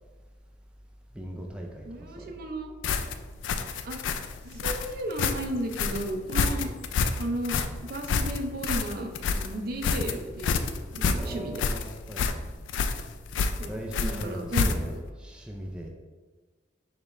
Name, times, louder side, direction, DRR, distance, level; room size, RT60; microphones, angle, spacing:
voice 1, 1.1-2.4 11.1-12.4 13.7-15.9, right 1 dB, 5° right, 0 dB, 0.3 m, -39 dB
voice 2, 1.9-2.7 3.8-4.0 4.4-6.7 7.1-11.6 13.6-14.8, right 1 dB, 55° right, 3 dB, 0.5 m, -34 dB
sound 1, 2.8-15.1, left 5 dB, 80° left, 0.3 m, -29 dB
5.0 x 2.4 x 4.1 m, 1.3 s
head